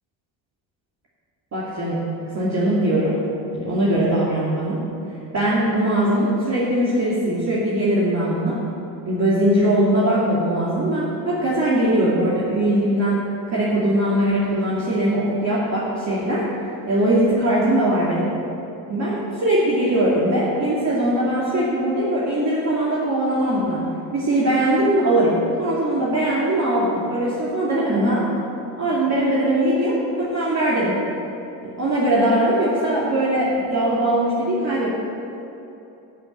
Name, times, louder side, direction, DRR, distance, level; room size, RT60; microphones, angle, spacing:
voice 1, 1.5-2.1 2.3-3.2 3.5-4.9 5.3-8.6 9.0-16.5 16.9-18.3 18.9-28.3 28.8-31.0 31.6-34.9, right 1 dB, 40° right, -8 dB, 2.7 m, -21 dB
11.0 x 5.8 x 8.7 m, 2.8 s
supercardioid pair, 65°, 43 cm